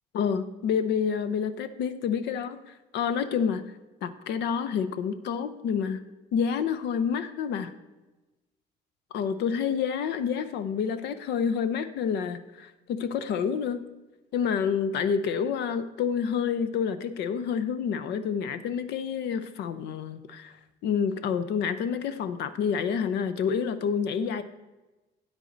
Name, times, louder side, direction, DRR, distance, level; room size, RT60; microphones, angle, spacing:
voice 1, 0.1-3.6 4.0-6.0 6.3-7.7 9.1-13.8 14.3-24.4, left 7 dB, 75° left, 11 dB, 0.6 m, -28 dB
9.0 x 8.1 x 3.9 m, 1.1 s
cardioid pair, 95°, 18 cm